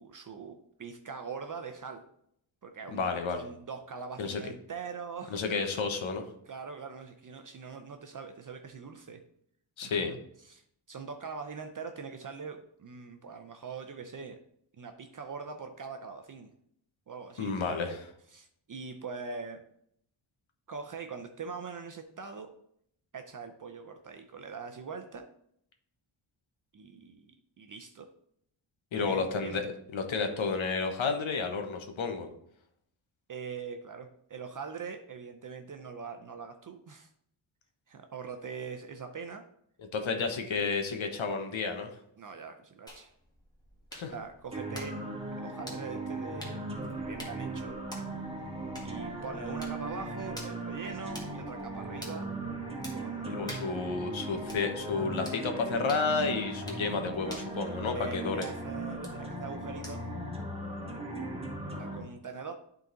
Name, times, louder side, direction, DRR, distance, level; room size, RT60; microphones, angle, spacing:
voice 1, 0.0-2.0 2.6-5.7 6.5-9.2 9.8-10.2 10.4-14.4 14.8-16.5 17.1-17.8 18.3-19.6 20.7-22.5 23.1-25.3 26.7-27.3 27.6-28.1 29.0-29.6 33.3-37.1 37.9-39.5 42.2-43.1 44.1-45.0 45.4-46.7 47.0-47.8 48.8-52.3 52.9-53.5 56.8-56.9 57.2-57.5 57.9-60.0 61.6-62.5, right 5 dB, 45° right, 6 dB, 0.6 m, -42 dB
voice 2, 2.9-3.4 4.2-4.4 5.3-6.2 9.8-10.1 17.4-18.0 28.9-32.3 39.9-41.9 43.9-44.1 53.3-58.4, left 4 dB, 80° left, 5 dB, 1.1 m, -31 dB
sound 1, 42.9-60.3, equal, 10° left, 1.6 m, -50 dB
sound 2, 44.5-62.0, right 2 dB, 10° right, 1.6 m, -38 dB
11.0 x 3.9 x 3.9 m, 0.71 s
wide cardioid pair, 150°, 46 cm